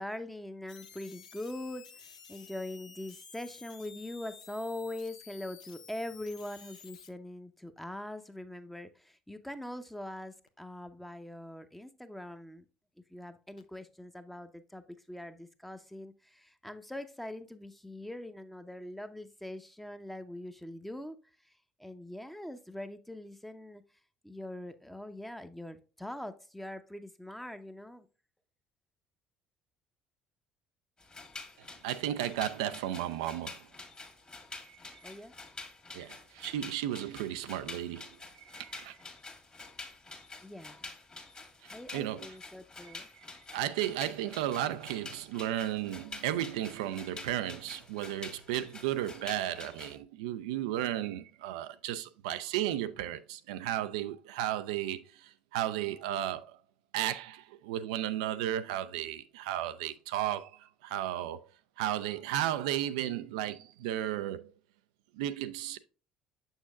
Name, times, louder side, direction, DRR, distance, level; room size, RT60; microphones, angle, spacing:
voice 1, 0.0-1.9 2.3-12.6 13.1-21.2 21.8-23.8 24.2-28.1 35.0-35.3 40.4-40.9 41.7-43.1, left 1 dB, 5° left, 0.8 m, -42 dB
sound 1, 0.7-7.1 10.5-10.6 13.6-13.7, left 6 dB, 85° left, 0.5 m, -52 dB
sound 2, 31.0-50.0, left 3 dB, 25° left, 1.7 m, -48 dB
voice 2, 31.6-33.7 34.7-35.0 35.9-38.1 38.4-39.0 41.6-42.3 42.8-43.3 43.5-56.6 56.9-61.5 61.8-64.5 65.1-65.8, right 12 dB, 70° right, 0.4 m, -34 dB
6.9 x 6.4 x 2.4 m
hypercardioid pair, 60°, 4 cm